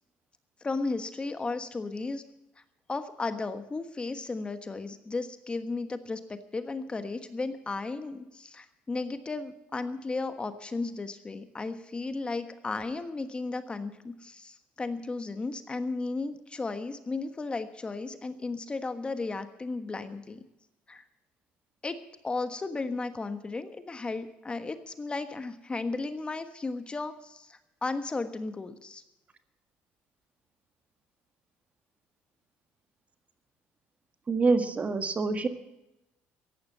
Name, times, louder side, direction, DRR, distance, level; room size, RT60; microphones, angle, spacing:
voice 1, 0.6-2.2 2.9-20.4 20.9-21.0 21.8-29.0, left 3 dB, 20° left, 10 dB, 1.3 m, -35 dB
voice 2, 34.3-35.5, right 3 dB, 30° right, 9 dB, 1.7 m, -26 dB
15.0 x 10.5 x 7.3 m, 0.92 s
supercardioid pair, 90°, 5 cm